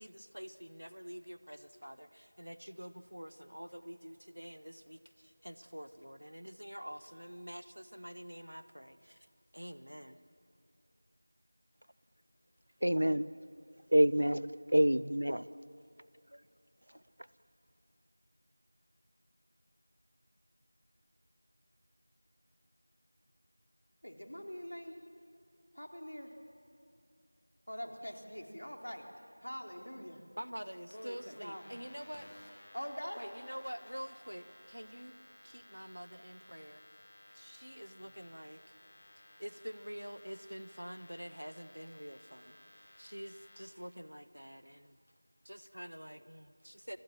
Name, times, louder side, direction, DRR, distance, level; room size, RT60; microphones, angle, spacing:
voice 1, 0.0-9.3 9.5-10.2 30.4-32.3 33.2-35.2 35.4-36.8 37.3-38.8 39.4-42.6 43.0-45.0 45.4-47.0, equal, 85° right, 12 dB, 1.4 m, -47 dB
voice 2, 12.8-13.3 13.9-15.5, equal, 65° right, 17 dB, 0.7 m, -27 dB
voice 3, 24.0-25.0 25.7-26.3 27.7-30.2 30.9-31.8 32.7-33.2 33.5-33.6, equal, 70° left, 3 dB, 3.4 m, -44 dB
sound 1, 30.9-43.7, left 1 dB, 20° left, 1.7 m, -58 dB
29.0 x 22.5 x 7.5 m, 2.4 s
figure-of-eight pair, 175°, 0 cm